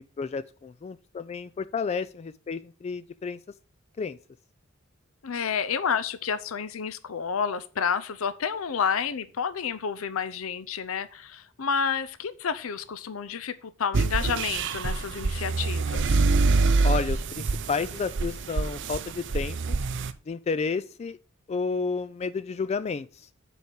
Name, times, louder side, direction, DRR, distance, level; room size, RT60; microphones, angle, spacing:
voice 1, 0.0-3.4 4.0-4.2 16.8-19.8 20.3-21.2 21.5-23.1, left 5 dB, 30° left, 14 dB, 0.3 m, -31 dB
voice 2, 5.2-16.2, left 6 dB, 80° left, 14 dB, 0.6 m, -30 dB
sound 1, 13.9-20.1, right 3 dB, 60° right, 0.6 m, -25 dB
7.0 x 4.6 x 6.5 m, 0.39 s
head